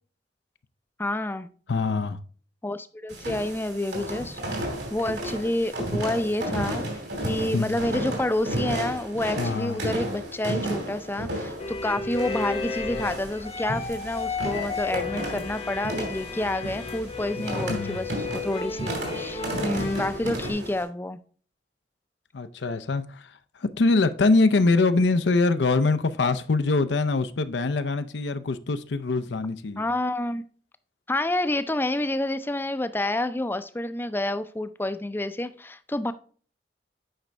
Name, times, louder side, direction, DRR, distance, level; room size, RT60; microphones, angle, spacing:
voice 1, 1.0-1.5 2.6-21.2 29.8-30.4 31.1-36.1, left 1 dB, 10° left, 0.5 m, -29 dB
voice 2, 1.7-2.2 7.5-7.8 9.4-9.8 17.7-18.0 19.5-19.6 22.3-23.3 23.6-29.8, left 3 dB, 85° left, 0.6 m, -23 dB
sound 1, 3.1-20.8, right 1 dB, 80° right, 2.8 m, -33 dB
sound 2, 11.6-20.5, left 4 dB, 35° left, 0.8 m, -33 dB
8.9 x 5.1 x 3.3 m
head